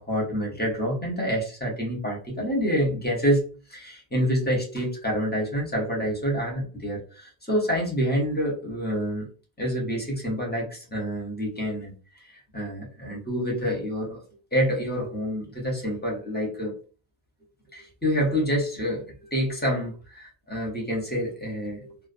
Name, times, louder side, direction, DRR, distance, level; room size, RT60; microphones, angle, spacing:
voice 1, 0.0-3.4 3.7-9.3 9.6-12.3 12.5-14.2 14.5-16.7 17.7-22.1, equal, 10° left, -2 dB, 0.6 m, -27 dB
2.4 x 2.1 x 2.4 m, 0.38 s
omnidirectional pair, 1.1 m